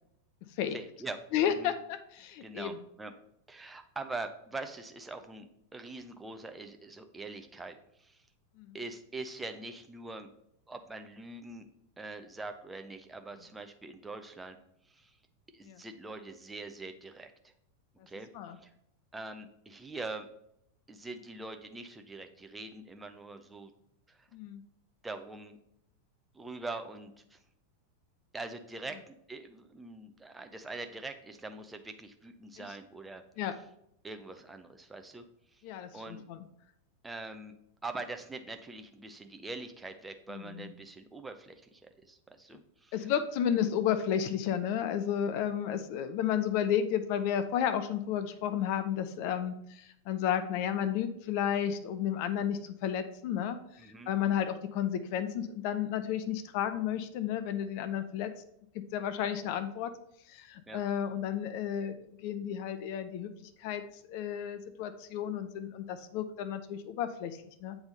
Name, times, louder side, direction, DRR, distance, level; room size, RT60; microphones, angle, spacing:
voice 1, 0.7-1.2 1.5-1.7 2.4-3.1 3.5-8.2 8.7-10.3 10.7-11.7 12.0-14.6 14.9-15.1 15.5-17.3 18.1-18.3 18.6-18.7 19.1-20.3 20.9-23.7 24.1-24.3 25.0-25.6 26.3-27.4 28.3-33.2 34.0-35.2 35.9-36.2 37.0-37.5 37.8-42.9 53.8-54.1 60.7-60.8, right 3 dB, 10° right, 7 dB, 0.6 m, -43 dB
voice 2, 1.3-2.8 8.6-8.8 15.6-15.8 18.3-18.6 24.3-24.6 32.6-32.8 33.4-33.5 35.6-36.4 40.3-40.7 42.9-58.3 58.7-59.9 60.3-63.8 64.1-67.8, left 9 dB, 45° left, 10 dB, 0.5 m, -32 dB
7.9 x 3.5 x 3.9 m, 0.76 s
figure-of-eight pair, 90°, 0 cm